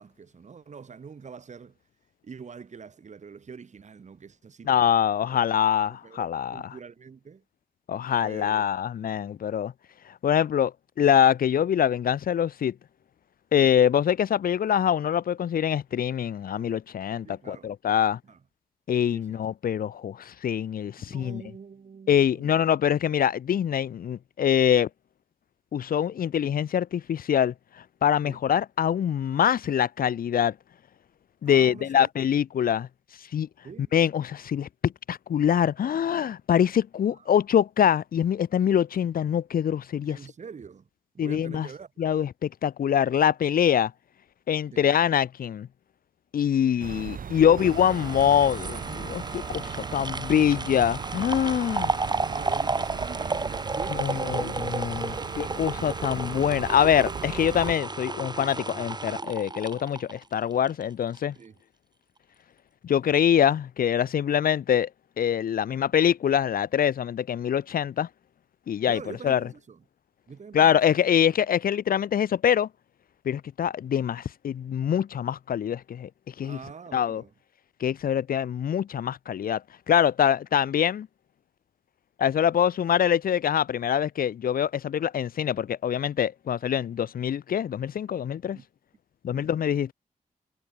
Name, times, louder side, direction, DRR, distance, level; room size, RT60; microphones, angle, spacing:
voice 1, 0.0-1.8 2.2-4.7 5.3-5.5 5.9-7.4 8.2-8.7 13.5-13.7 17.2-17.7 18.2-18.4 19.1-19.4 21.1-22.6 28.2-28.4 31.4-32.1 33.6-33.9 37.1-37.3 40.0-40.9 41.1-42.1 44.7-44.9 47.4-47.8 51.7-56.0 61.4-61.6 68.9-69.8 70.3-70.8 76.4-77.3 86.5-86.6 88.5-88.6 89.3-89.5, right 6 dB, 55° right, 2.3 m, -44 dB
voice 2, 4.7-6.6 7.9-9.7 10.2-12.7 13.5-18.2 18.9-21.4 22.1-24.9 25.7-27.5 28.0-30.5 31.4-32.9 33.3-33.5 33.9-40.2 41.2-41.7 42.0-43.9 44.5-45.7 46.3-51.9 54.0-55.0 55.4-61.3 62.8-64.9 65.2-68.1 68.7-69.4 70.5-72.7 73.2-76.1 76.4-76.6 76.9-77.2 77.8-79.6 79.9-81.1 82.2-88.6 89.2-89.9, left 9 dB, 80° left, 1.0 m, -24 dB
sound 1, 46.8-57.7, right 7 dB, 70° right, 2.4 m, -38 dB
sound 2, 47.6-60.8 61.2-61.3, right 3 dB, 30° right, 3.2 m, -32 dB
cardioid pair, 90°, 15 cm